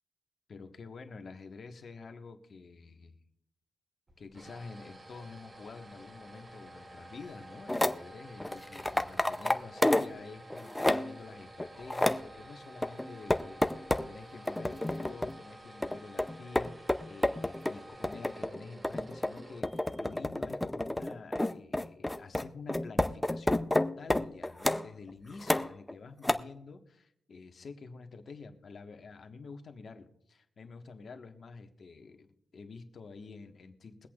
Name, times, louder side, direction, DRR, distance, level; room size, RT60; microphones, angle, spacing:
voice 1, 0.5-3.2 4.2-32.3 32.5-34.1, left 4 dB, 45° left, 5 dB, 1.4 m, -48 dB
sound 1, 4.1-20.3, right 1 dB, 25° right, 1.1 m, -51 dB
sound 2, 7.7-8.0 8.4-10.2 10.5-11.2 11.6-12.3 12.8-14.1 14.5-15.4 15.8-24.9 25.4-25.9 26.2-26.3, left 1 dB, 10° left, 0.5 m, -30 dB
23.0 x 8.4 x 2.4 m, 0.76 s
wide cardioid pair, 145°, 0 cm